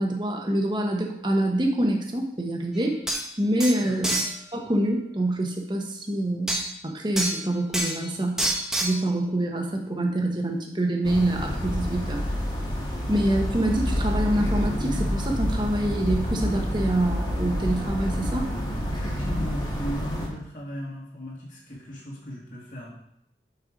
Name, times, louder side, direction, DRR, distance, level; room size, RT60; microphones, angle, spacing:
voice 1, 0.0-3.0 3.4-6.6 6.8-8.4 8.8-12.2 13.1-18.5, right 1 dB, 25° right, 2 dB, 1.1 m, -26 dB
sound 1, 2.8-2.9 3.1-3.2 3.6-4.3 6.5-6.6 7.2-7.4 7.7-8.0 8.4-9.0, right 1 dB, 5° right, 0.8 m, -26 dB
sound 2, 11.0-20.3, equal, 25° left, 1.4 m, -28 dB
voice 2, 18.9-22.9, equal, 45° left, -4 dB, 2.3 m, -37 dB
6.4 x 5.5 x 5.1 m, 0.75 s
head